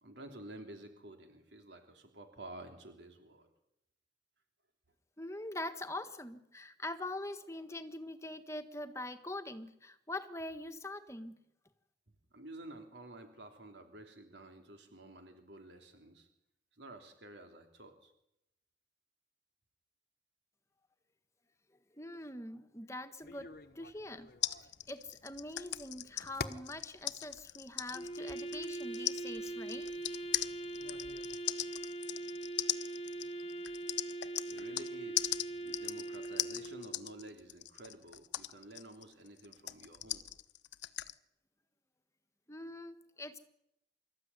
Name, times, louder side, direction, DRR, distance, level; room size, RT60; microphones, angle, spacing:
voice 1, 0.0-3.5 12.3-16.3 16.7-18.1 31.7-31.8 34.5-40.3, right 1 dB, 75° right, 5 dB, 3.1 m, -51 dB
voice 2, 5.2-11.4 22.0-24.3 24.9-29.9 42.5-43.4, left 1 dB, 15° left, 8 dB, 1.5 m, -43 dB
sound 1, 23.2-31.4, left 3 dB, 55° left, 1.1 m, -51 dB
sound 2, 24.4-34.9 35.2-41.1, left 14 dB, 80° left, 1.0 m, -39 dB
Wind instrument woodwind instrument, 27.9-37.2, right 2 dB, 30° left, 1.6 m, -42 dB
26.0 x 14.0 x 9.7 m, 0.81 s
head